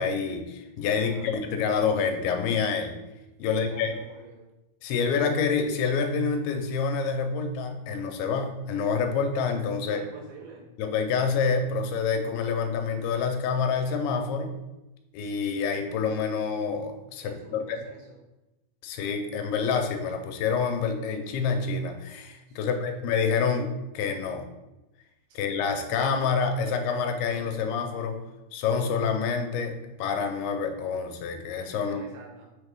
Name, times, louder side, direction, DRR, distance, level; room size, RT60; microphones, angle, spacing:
voice 1, 0.0-3.0 3.4-3.9 4.8-10.0 10.8-14.5 15.1-17.8 18.8-24.5 25.4-28.2 28.5-32.0, left 5 dB, 85° left, 5 dB, 2.6 m, -27 dB
voice 2, 0.9-1.3 3.5-4.5 9.8-10.7 17.2-18.2 22.5-23.0 25.3-25.4 31.8-32.5, right 4 dB, 90° right, 0 dB, 3.2 m, -47 dB
6.2 x 4.4 x 3.5 m, 0.99 s
omnidirectional pair, 4.5 m